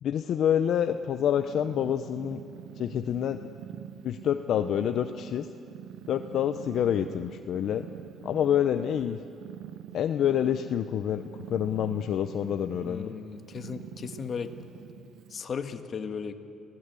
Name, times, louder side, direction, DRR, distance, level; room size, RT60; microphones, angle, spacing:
voice 1, 0.0-2.4 2.8-3.4 4.0-5.5 6.1-7.8 8.2-9.2 9.9-11.2 11.5-13.1, left 9 dB, 55° left, 8 dB, 0.7 m, -27 dB
Purr, 0.6-15.4, right 10 dB, 80° right, 0.9 m, -46 dB
voice 2, 12.8-14.5 15.3-16.3, left 6 dB, 35° left, 7 dB, 1.5 m, -36 dB
28.0 x 17.5 x 8.3 m, 2.6 s
cardioid pair, 140°, 0 cm